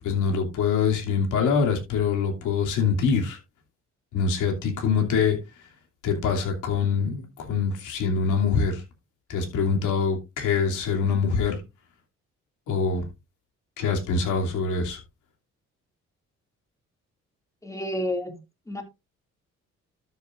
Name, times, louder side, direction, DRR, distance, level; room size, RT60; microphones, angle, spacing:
voice 1, 0.0-3.4 4.1-5.4 6.0-8.8 9.3-11.6 12.7-13.1 13.8-15.0, left 5 dB, 85° left, 2.9 m, -24 dB
voice 2, 17.6-18.3 18.7-18.8, left 1 dB, 10° left, 2.5 m, -29 dB
12.5 x 7.0 x 2.5 m
cardioid pair, 90°, 30 cm